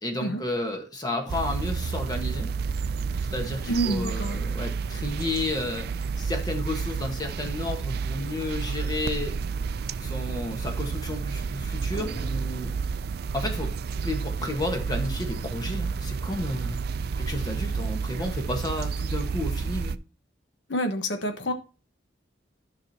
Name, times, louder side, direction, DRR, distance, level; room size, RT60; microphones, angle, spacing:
voice 1, 0.0-2.5 3.3-5.9 6.2-9.4 10.0-12.7 13.3-13.7 14.0-16.8 17.2-20.0, left 1 dB, 20° left, 1.3 m, -32 dB
sound 1, 1.3-20.0, right 5 dB, 60° right, 0.4 m, -30 dB
voice 2, 3.7-4.4 20.7-21.5, right 1 dB, 90° left, 1.3 m, -27 dB
sound 2, 11.9-14.0, right 2 dB, 55° left, 4.0 m, -43 dB
12.5 x 5.7 x 2.8 m
head